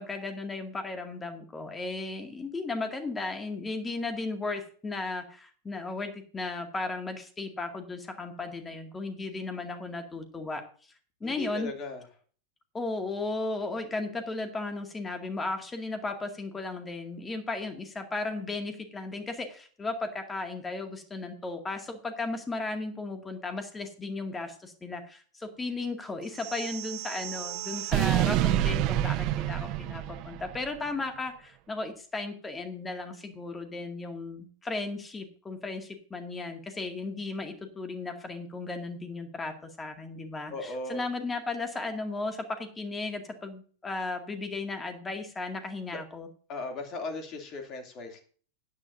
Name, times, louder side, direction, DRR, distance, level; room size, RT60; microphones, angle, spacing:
voice 1, 0.0-10.6 11.2-11.7 12.7-46.3, left 3 dB, 15° left, 6 dB, 2.1 m, -35 dB
voice 2, 11.2-12.0 40.5-41.0 46.5-48.2, left 2 dB, 35° left, 4 dB, 2.7 m, -37 dB
sound 1, 26.3-30.7, right 14 dB, 40° right, 0.6 m, -29 dB
16.0 x 9.9 x 2.6 m, 0.42 s
figure-of-eight pair, 90°, 0 cm